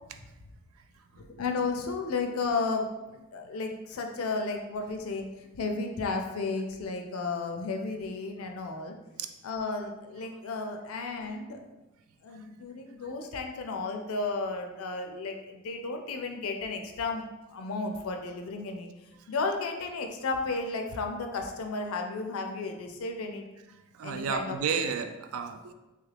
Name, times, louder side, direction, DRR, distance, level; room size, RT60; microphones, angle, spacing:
voice 1, 1.2-5.3 5.6-9.0 9.4-11.6 12.2-18.9 19.3-23.5 24.0-24.9, left 3 dB, 70° left, 4 dB, 0.4 m, -33 dB
voice 2, 23.9-25.7, right 6 dB, 65° right, 8 dB, 0.3 m, -32 dB
3.1 x 2.3 x 3.3 m, 1.1 s
head